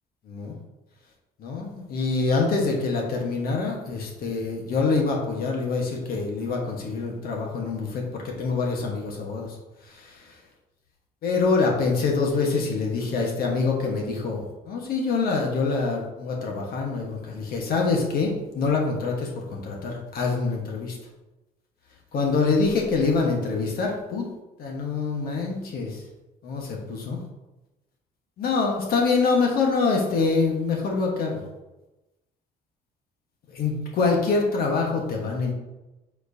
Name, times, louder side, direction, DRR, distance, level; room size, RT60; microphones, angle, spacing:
voice 1, 1.4-9.5 9.9-10.1 11.2-21.0 22.1-24.3 24.6-26.0 26.4-27.2 28.4-31.4 33.5-35.5, left 4 dB, 60° left, 0 dB, 1.4 m, -25 dB
7.5 x 4.5 x 2.8 m, 1.0 s
cardioid pair, 110°, 17 cm